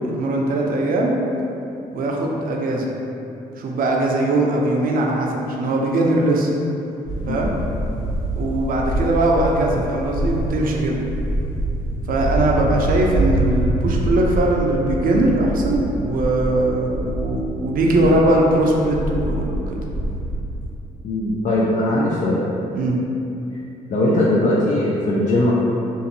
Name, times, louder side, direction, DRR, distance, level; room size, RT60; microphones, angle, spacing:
voice 1, 0.0-1.2 1.9-2.9 3.6-6.5 7.3-7.5 8.4-11.0 12.1-19.8 22.7-23.0, right 1 dB, 55° right, -1 dB, 0.5 m, -20 dB
sound 1, 7.1-20.7, right 1 dB, 70° left, 1.3 m, -25 dB
voice 2, 21.0-22.4 23.9-25.5, left 1 dB, 50° left, -6 dB, 0.4 m, -19 dB
2.6 x 2.4 x 2.7 m, 2.8 s
supercardioid pair, 60°, 17 cm